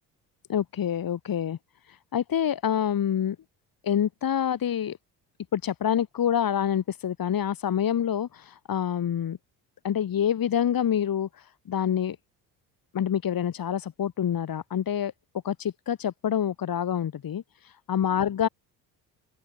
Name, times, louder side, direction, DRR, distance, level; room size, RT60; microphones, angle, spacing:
voice 1, 0.5-1.6 1.9-3.4 3.8-5.0 5.5-9.4 9.8-12.2 12.9-15.1 15.4-18.5, left 9 dB, 45° left, 3.5 m, -27 dB
open air
hypercardioid pair, 55°, 47 cm